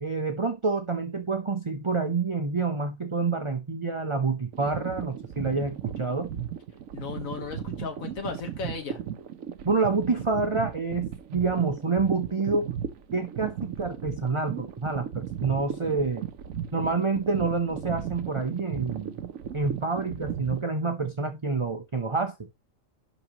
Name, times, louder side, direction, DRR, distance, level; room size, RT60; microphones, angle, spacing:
voice 1, 0.0-6.3 9.6-12.7 13.1-16.3 16.7-19.1 19.5-22.3, right 4 dB, 30° right, 0.7 m, -28 dB
sound 1, 4.5-20.6, right 9 dB, 80° right, 1.2 m, -36 dB
voice 2, 6.9-9.0, left 5 dB, 80° left, 1.7 m, -35 dB
11.0 x 4.1 x 3.0 m
omnidirectional pair, 1.4 m